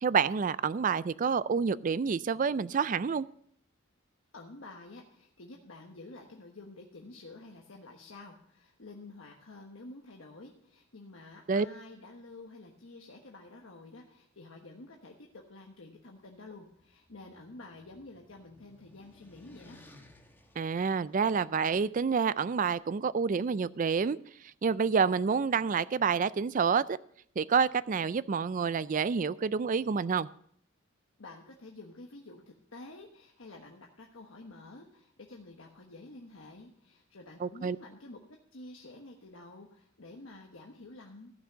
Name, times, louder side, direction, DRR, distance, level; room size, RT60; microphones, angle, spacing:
voice 1, 0.0-3.3 11.5-11.7 20.6-24.2 24.6-27.0 27.4-30.3 37.4-37.8, right 5 dB, 40° right, 18 dB, 0.3 m, -28 dB
voice 2, 4.3-19.9 31.2-41.3, left 2 dB, 70° left, 1 dB, 1.3 m, -50 dB
sound 1, 16.7-21.7, left 1 dB, 10° left, 1.2 m, -59 dB
14.5 x 6.0 x 6.7 m, 0.66 s
head